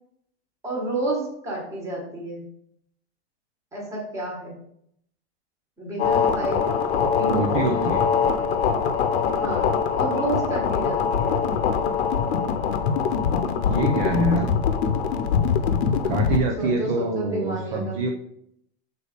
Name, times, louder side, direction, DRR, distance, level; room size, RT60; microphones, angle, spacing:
voice 1, 0.6-2.5 3.7-4.5 5.8-7.9 9.4-11.3 16.6-18.0, right 2 dB, 10° right, -2 dB, 1.5 m, -30 dB
sound 1, 6.0-16.4, left 6 dB, 75° left, 0.9 m, -23 dB
voice 2, 7.2-8.1 13.6-14.5 16.0-18.1, right 2 dB, 30° right, 1 dB, 0.6 m, -25 dB
6.6 x 4.1 x 5.0 m, 0.72 s
supercardioid pair, 180°, 32 cm